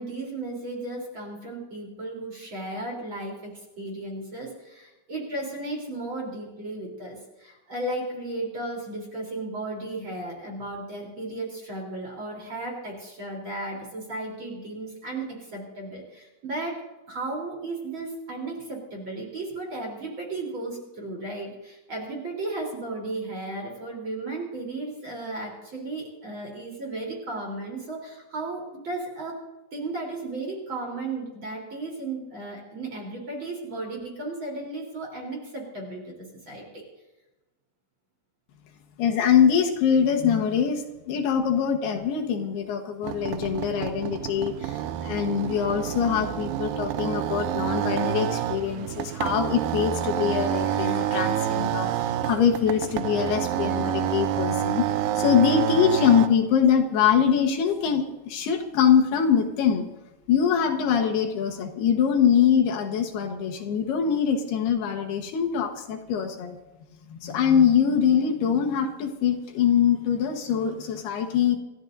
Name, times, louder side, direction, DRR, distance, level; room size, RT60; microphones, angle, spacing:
voice 1, 0.0-29.4 29.7-36.8, right 2 dB, 30° right, -1 dB, 3.9 m, -35 dB
voice 2, 39.0-54.8 55.2-59.9 60.3-66.6 67.1-71.6, left 8 dB, 75° left, 3 dB, 3.2 m, -23 dB
sound 1, 43.0-56.3, right 11 dB, 85° right, 2.0 m, -28 dB
26.5 x 14.5 x 2.6 m, 1.0 s
omnidirectional pair, 4.7 m